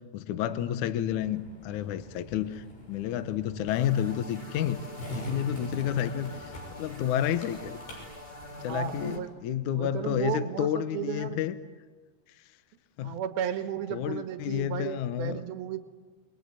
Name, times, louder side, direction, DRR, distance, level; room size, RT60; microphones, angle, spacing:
voice 1, 0.1-4.8 5.1-7.8 8.6-11.6 13.0-13.2 13.9-15.4, left 10 dB, 80° left, 11 dB, 1.8 m, -30 dB
Skateboard, 1.1-9.1, equal, 55° left, 8.3 m, -44 dB
sound 1, 3.7-9.2, left 1 dB, 15° left, 3.2 m, -45 dB
voice 2, 8.6-9.3 9.7-11.4 13.0-15.8, right 10 dB, 70° right, 8 dB, 2.9 m, -34 dB
29.0 x 22.5 x 8.4 m, 1.3 s
omnidirectional pair, 5.0 m